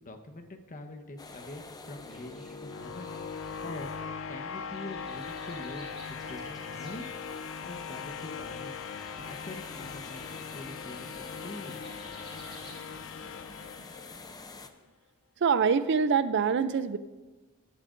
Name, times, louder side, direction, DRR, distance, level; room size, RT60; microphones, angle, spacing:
voice 1, 0.0-3.1 3.6-3.9 4.3-7.1 7.6-8.7 9.1-12.1, left 1 dB, 35° left, 6 dB, 1.0 m, -44 dB
sound 1, 1.2-14.7, left 3 dB, 15° left, 0.5 m, -48 dB
sound 2, 1.6-14.6, left 6 dB, 60° left, 0.6 m, -41 dB
sound 3, 2.0-12.8, right 1 dB, ahead, 3.7 m, -56 dB
voice 2, 15.4-17.0, right 6 dB, 55° right, 13 dB, 0.4 m, -25 dB
18.5 x 11.0 x 2.6 m, 1.2 s
head